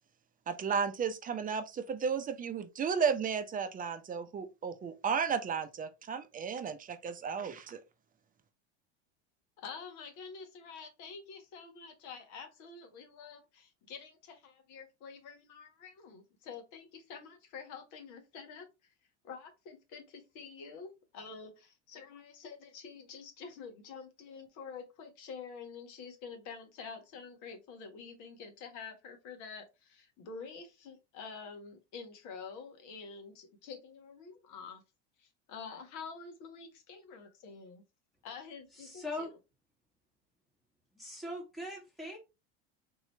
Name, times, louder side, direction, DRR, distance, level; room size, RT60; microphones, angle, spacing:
voice 1, 0.5-7.8, right 6 dB, 25° right, 0.6 m, -34 dB
voice 2, 9.6-18.9 19.2-34.8 35.2-37.8 38.2-39.3, left 5 dB, 60° left, 1.4 m, -48 dB
voice 3, 38.7-39.3 40.9-42.2, left 1 dB, ahead, 1.4 m, -41 dB
3.8 x 2.9 x 3.2 m
hypercardioid pair, 95°, 34 cm